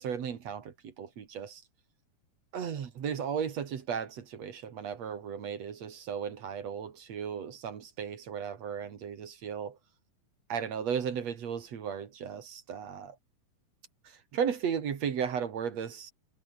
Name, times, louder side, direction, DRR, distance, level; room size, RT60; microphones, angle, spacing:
voice 1, 0.0-1.6 2.5-9.8 10.5-13.2 14.0-16.1, right 7 dB, 50° right, 2.8 m, -35 dB
omnidirectional pair, 4.2 m